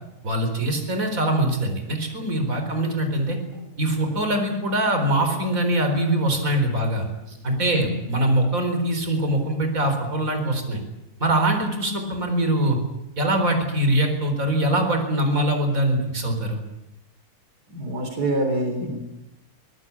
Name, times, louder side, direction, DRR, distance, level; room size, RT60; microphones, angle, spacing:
voice 1, 0.2-3.4 3.8-7.1 7.4-10.8 11.2-12.8 13.2-16.6, right 1 dB, 60° right, 5 dB, 4.8 m, -23 dB
voice 2, 17.7-19.0, right 1 dB, 90° right, 5 dB, 4.4 m, -26 dB
24.5 x 19.5 x 8.6 m, 0.93 s
omnidirectional pair, 1.7 m